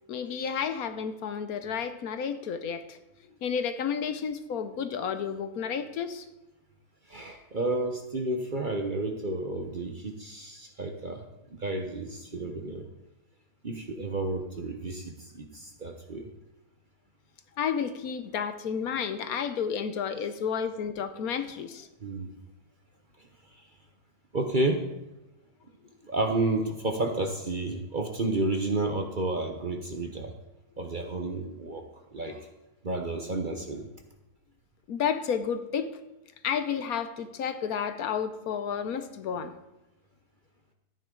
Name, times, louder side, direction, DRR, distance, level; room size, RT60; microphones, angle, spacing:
voice 1, 0.1-3.0 3.4-6.2 17.6-21.9 34.9-35.9 36.4-39.5, left 7 dB, 70° left, 10 dB, 1.2 m, -31 dB
voice 2, 7.1-11.3 11.5-12.9 13.6-16.3 22.0-22.3 24.3-24.9 26.0-30.3 30.8-31.9 32.1-32.5 32.8-33.9, right 2 dB, 40° right, 4 dB, 0.9 m, -31 dB
13.5 x 9.1 x 3.8 m, 0.97 s
omnidirectional pair, 1.7 m